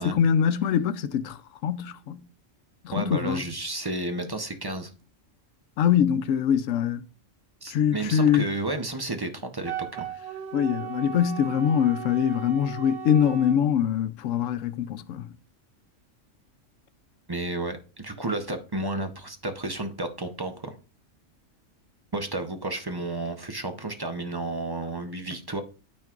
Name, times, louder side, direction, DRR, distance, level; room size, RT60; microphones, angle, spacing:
voice 1, 0.0-2.2 2.8-3.4 5.8-7.0 7.7-8.5 10.5-15.3, left 9 dB, 80° left, 1.0 m, -23 dB
voice 2, 2.9-4.9 7.6-10.1 17.3-20.7 22.1-25.6, right 2 dB, 25° right, 0.5 m, -32 dB
Wind instrument woodwind instrument, 9.6-13.6, right 10 dB, 80° right, 1.4 m, -37 dB
12.5 x 4.3 x 2.4 m
omnidirectional pair, 1.3 m